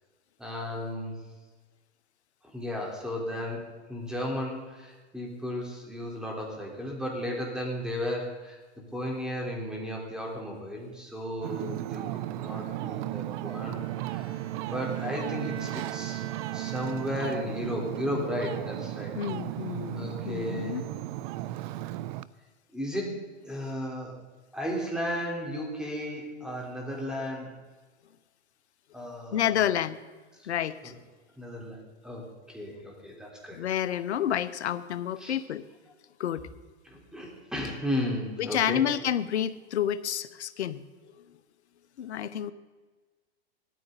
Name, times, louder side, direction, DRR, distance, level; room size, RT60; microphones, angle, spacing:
voice 1, 0.4-1.2 2.5-8.6 8.9-14.4 14.7-16.2 16.5-19.2 19.9-20.8 22.7-24.2 24.5-27.6 28.9-29.7 30.8-30.9 31.4-33.6 35.2-35.4 36.9-38.8, equal, ahead, -2 dB, 4.0 m, -34 dB
Ocean, 11.4-22.2, right 15 dB, 50° right, 0.6 m, -35 dB
Bowed string instrument, 13.4-17.6, right 9 dB, 80° right, 1.7 m, -46 dB
voice 2, 19.1-20.8 29.3-30.0 30.4-30.9 33.5-35.6 36.2-36.5 38.4-40.8 41.2-41.3 42.0-42.5, left 10 dB, 85° left, 15 dB, 0.9 m, -29 dB
18.5 x 13.5 x 4.1 m, 1.3 s
hypercardioid pair, 125°, 33 cm